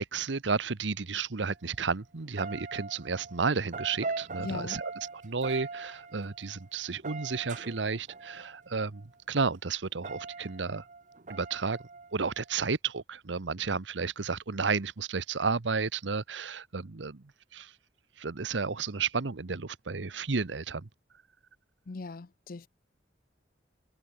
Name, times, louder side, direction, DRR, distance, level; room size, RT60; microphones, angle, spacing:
voice 1, 0.0-10.8 11.3-11.8 12.1-17.2 17.5-17.7 18.2-20.9, right 5 dB, 85° right, 1.0 m, -32 dB
sound 1, 1.5-1.8 2.2-9.2 9.9-12.5, right 4 dB, 45° right, 1.1 m, -42 dB
voice 2, 4.4-4.8 21.9-22.7, left 3 dB, 50° left, 0.6 m, -39 dB
head